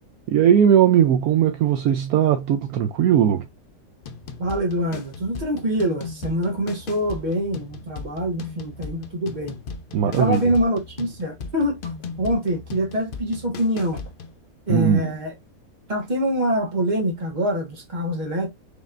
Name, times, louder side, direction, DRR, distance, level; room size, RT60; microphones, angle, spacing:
voice 1, 0.3-3.4 9.9-10.4 14.7-15.1, right 9 dB, 75° right, 1.0 m, -18 dB
sound 1, 4.0-14.4, left 4 dB, 70° left, 0.5 m, -37 dB
voice 2, 4.4-9.6 10.1-11.9 12.2-14.0 14.7-15.3 15.9-18.5, equal, 30° right, 1.4 m, -25 dB
5.0 x 3.1 x 2.5 m
omnidirectional pair, 1.7 m